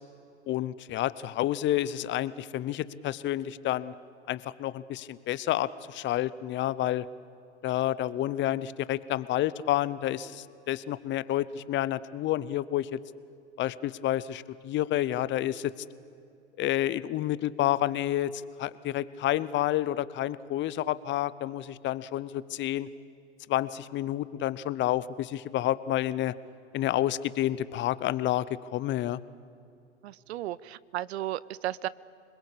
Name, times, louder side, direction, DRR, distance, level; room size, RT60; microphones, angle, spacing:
voice 1, 0.5-3.9 4.3-7.1 7.6-13.0 13.6-15.7 16.6-18.3 18.6-22.9 23.5-26.3 26.7-28.5 28.7-29.2, left 13 dB, 35° left, 18 dB, 0.8 m, -29 dB
voice 2, 30.0-31.9, right 14 dB, 65° right, 21 dB, 0.7 m, -34 dB
25.5 x 21.5 x 8.6 m, 2.6 s
hypercardioid pair, 95°, 35 cm